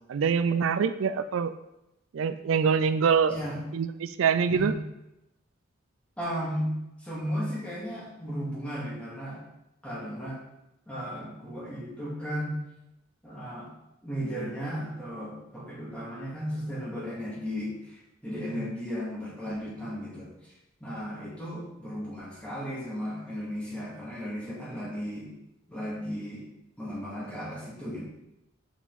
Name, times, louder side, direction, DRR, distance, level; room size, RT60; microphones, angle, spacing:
voice 1, 0.1-1.5 2.1-3.3 3.7-4.8 18.6-18.7, right 6 dB, 80° right, 12 dB, 0.4 m, -25 dB
voice 2, 3.3-3.6 4.5-4.7 6.2-6.7 7.0-9.4 9.8-10.4 10.9-12.5 13.2-13.7 14.0-20.5 20.8-25.3 25.7-26.4 26.8-28.0, equal, 5° left, -7 dB, 2.4 m, -35 dB
7.1 x 5.6 x 4.1 m, 0.91 s
head